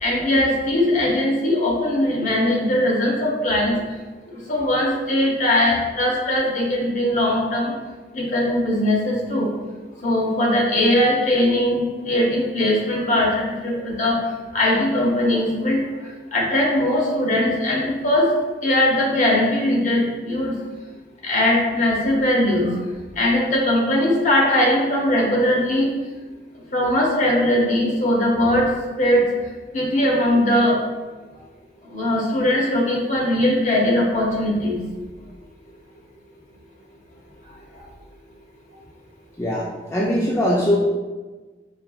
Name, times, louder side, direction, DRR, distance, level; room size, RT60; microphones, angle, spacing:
voice 1, 0.0-3.7 4.5-7.7 8.1-9.5 10.0-14.1 14.5-15.8 16.3-18.2 18.6-20.5 21.2-22.7 23.2-25.9 26.7-28.7 29.0-29.2 29.7-30.8 31.9-34.8, left 1 dB, 45° left, -3 dB, 0.9 m, -20 dB
voice 2, 39.4-40.8, equal, 15° left, -5 dB, 0.4 m, -21 dB
4.3 x 2.9 x 2.3 m, 1.3 s
head